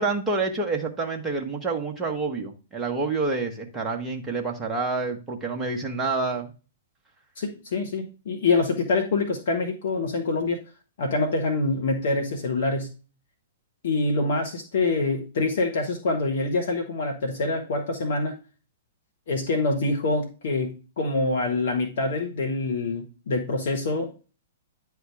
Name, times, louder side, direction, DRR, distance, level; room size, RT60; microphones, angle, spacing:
voice 1, 0.0-6.5, right 3 dB, 15° right, 1 dB, 1.4 m, -28 dB
voice 2, 7.4-10.6 11.0-12.9 13.8-18.3 19.3-24.1, left 3 dB, 55° left, 1 dB, 1.5 m, -25 dB
9.7 x 3.6 x 4.8 m, 0.34 s
figure-of-eight pair, 110°, 0 cm